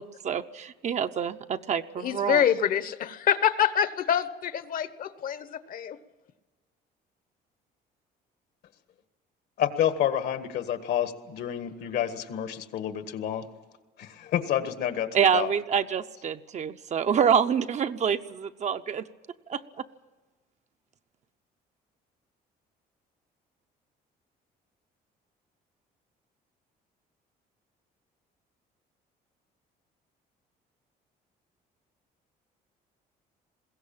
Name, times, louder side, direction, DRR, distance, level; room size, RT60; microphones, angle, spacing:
voice 1, 0.0-2.4 15.1-19.1 19.5-19.6, right 7 dB, 45° right, 9 dB, 0.8 m, -26 dB
voice 2, 2.0-6.0, left 9 dB, 55° left, 13 dB, 1.1 m, -26 dB
voice 3, 9.6-13.5 14.0-15.5, left 10 dB, 75° left, 9 dB, 1.7 m, -29 dB
21.5 x 16.5 x 8.8 m, 1.3 s
cardioid pair, 110°, 17 cm